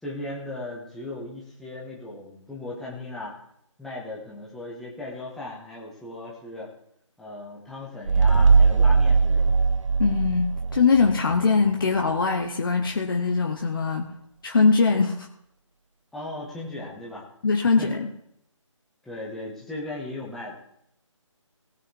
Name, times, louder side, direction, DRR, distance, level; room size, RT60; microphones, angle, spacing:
voice 1, 0.0-3.3 3.8-6.7 7.2-9.6 16.1-17.3 17.6-18.0 19.0-20.5, left 2 dB, ahead, -5 dB, 1.8 m, -37 dB
sound 1, 8.1-11.4, right 4 dB, 70° right, 0.5 m, -20 dB
voice 2, 10.0-14.1 14.4-15.3 17.4-18.1, left 4 dB, 45° left, 2 dB, 1.2 m, -22 dB
18.5 x 6.2 x 4.7 m, 0.72 s
figure-of-eight pair, 150°, 16 cm